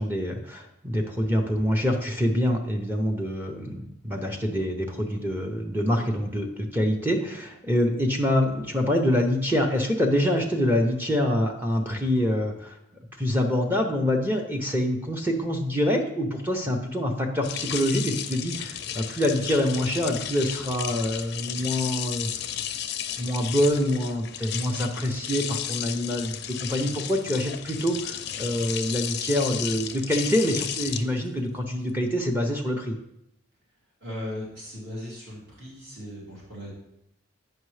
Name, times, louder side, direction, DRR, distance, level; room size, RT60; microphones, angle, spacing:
voice 1, 0.0-12.8 13.2-22.3 23.2-32.9, equal, 10° right, 1 dB, 0.6 m, -26 dB
sound 1, 17.4-31.9, left 10 dB, 50° left, 0.4 m, -34 dB
voice 2, 34.0-36.7, left 1 dB, 55° right, -7 dB, 2.5 m, -37 dB
8.8 x 5.4 x 3.2 m, 0.80 s
head